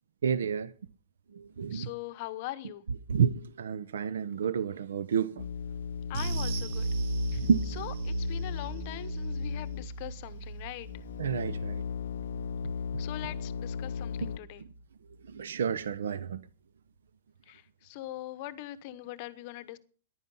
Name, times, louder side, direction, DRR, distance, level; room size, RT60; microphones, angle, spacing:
voice 1, 0.2-0.7 1.3-1.9 3.1-5.5 7.4-7.8 11.2-11.8 15.3-16.4, right 7 dB, 90° right, 0.7 m, -30 dB
voice 2, 1.7-2.8 6.1-6.9 7.3-7.4 7.8-10.9 13.0-14.6 17.5-19.8, left 15 dB, 30° left, 0.9 m, -41 dB
sound 1, 5.4-10.2 10.8-14.4, left 6 dB, 70° left, 0.6 m, -37 dB
sound 2, 6.1-14.8 15.1-15.3 15.7-15.8, right 2 dB, 35° right, 1.1 m, -37 dB
15.0 x 11.0 x 5.5 m
hypercardioid pair, 175°, 0 cm